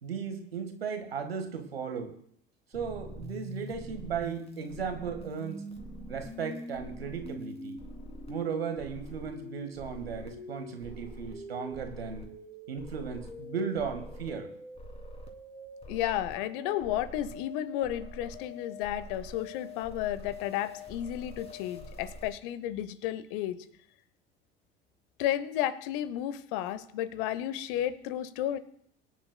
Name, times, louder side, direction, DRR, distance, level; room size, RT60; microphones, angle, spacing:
voice 1, 0.0-2.1 2.7-5.6 6.1-7.8 8.3-12.3 12.7-14.5, right 6 dB, 80° right, 7 dB, 1.5 m, -36 dB
sound 1, 2.7-22.3, left 1 dB, 20° left, 2.9 m, -44 dB
voice 2, 15.9-23.7 25.2-28.6, left 12 dB, 60° left, 16 dB, 0.9 m, -32 dB
23.0 x 10.0 x 2.2 m, 0.65 s
figure-of-eight pair, 60°, 30 cm